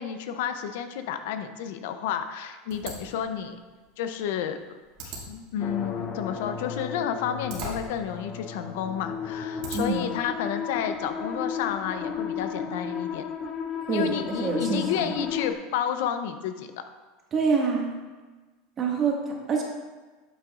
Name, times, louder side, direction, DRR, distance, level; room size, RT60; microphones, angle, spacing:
voice 1, 0.0-3.6 4.0-4.6 5.0-13.2 13.9-16.7, left 8 dB, 75° left, 9 dB, 0.6 m, -31 dB
sound 1, 2.7-10.1, right 2 dB, 65° right, 2.2 m, -43 dB
sound 2, 5.6-15.5, left 7 dB, 35° left, 0.7 m, -34 dB
voice 2, 13.9-15.1 17.3-17.9 18.8-19.6, right 4 dB, 30° right, -1 dB, 1.7 m, -26 dB
8.8 x 6.7 x 2.4 m, 1.3 s
supercardioid pair, 125°, 0 cm